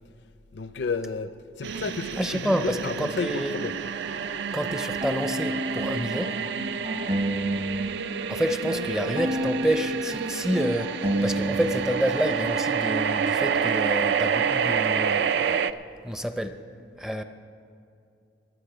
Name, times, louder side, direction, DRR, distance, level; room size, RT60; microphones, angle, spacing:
voice 1, 0.5-1.3 1.6-3.8, left 4 dB, 65° left, 12 dB, 0.5 m, -31 dB
sound 1, 1.6-15.7, right 7 dB, 65° right, 0.4 m, -28 dB
voice 2, 2.2-3.6 4.5-6.3 8.3-10.9 11.2-15.2 16.0-16.5 17.0-17.2, equal, 5° right, 8 dB, 0.5 m, -28 dB
sound 2, 4.0-12.0, equal, 35° right, 0.8 m, -31 dB
22.5 x 8.5 x 4.9 m, 2.5 s
head